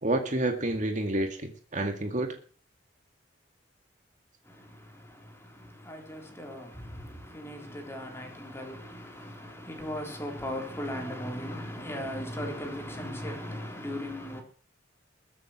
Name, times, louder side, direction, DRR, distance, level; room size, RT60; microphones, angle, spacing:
voice 1, 0.0-2.4, right 1 dB, 40° right, 2.1 m, -29 dB
voice 2, 4.4-14.4, equal, 15° left, 3.6 m, -38 dB
21.5 x 7.7 x 6.2 m
head